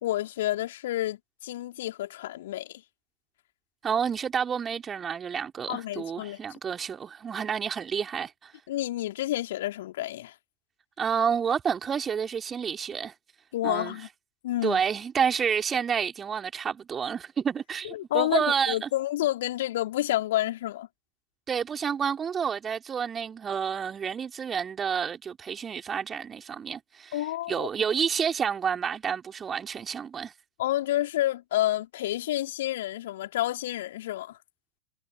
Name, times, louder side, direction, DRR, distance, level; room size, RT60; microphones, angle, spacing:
voice 1, 0.0-2.8 5.7-6.4 8.7-10.3 13.5-14.1 14.4-14.8 17.8-20.9 27.1-27.7 30.6-34.4, left 14 dB, 55° left, 3.7 m, -29 dB
voice 2, 3.8-8.5 11.0-13.1 13.6-14.0 14.6-18.9 21.5-27.2 27.5-30.3, right 7 dB, 20° right, 3.6 m, -29 dB
figure-of-eight pair, 90°, 0 cm